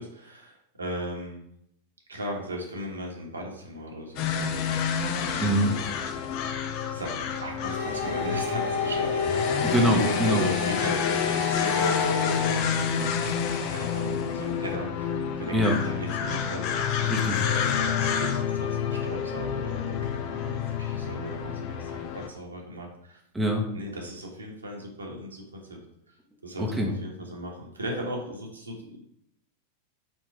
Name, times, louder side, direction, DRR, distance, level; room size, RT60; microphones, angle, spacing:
voice 1, 0.0-1.4 2.1-4.8 5.1-5.7 6.9-9.6 9.9-13.2 13.6-16.6 17.4-23.2 23.7-25.8 26.4-29.0, equal, 75° right, -1 dB, 1.4 m, -37 dB
sound 1, 4.2-22.3, left 7 dB, 45° left, 0.6 m, -29 dB
voice 2, 5.4-5.8 9.6-10.4 15.5-15.8 17.0-17.4 23.3-23.7 26.6-26.9, equal, 5° right, 0 dB, 1.0 m, -24 dB
sound 2, 7.6-12.5, left 5 dB, 60° left, 1.6 m, -28 dB
4.5 x 4.4 x 4.8 m, 0.75 s
figure-of-eight pair, 90°, 0 cm